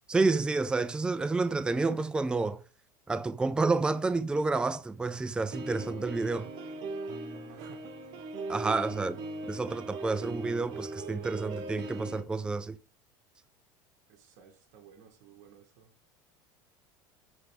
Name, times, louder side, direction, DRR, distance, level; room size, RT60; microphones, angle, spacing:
voice 1, 0.1-2.6 3.1-6.5 8.5-9.2 9.5-12.8, right 3 dB, 10° right, 0.4 m, -29 dB
sound 1, 5.5-12.2, right 2 dB, 50° right, 1.1 m, -39 dB
voice 2, 7.4-8.1 8.9-9.3 14.1-16.0, right 7 dB, 70° right, 1.8 m, -56 dB
8.0 x 3.4 x 5.2 m
supercardioid pair, 120°, 10 cm